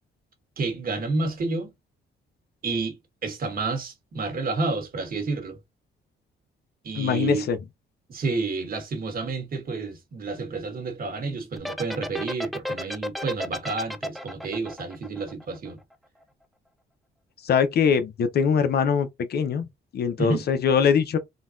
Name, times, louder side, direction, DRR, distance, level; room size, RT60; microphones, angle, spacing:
voice 1, 0.6-1.7 2.6-3.0 3.2-5.6 6.8-7.5 8.1-15.8 20.2-20.4, right 3 dB, 45° right, 1.4 m, -30 dB
voice 2, 7.0-7.6 17.4-19.7 19.9-21.2, left 6 dB, 55° left, 0.7 m, -22 dB
sound 1, 11.6-15.9, left 1 dB, ahead, 0.4 m, -32 dB
3.8 x 2.3 x 2.5 m
cardioid pair, 90°, 20 cm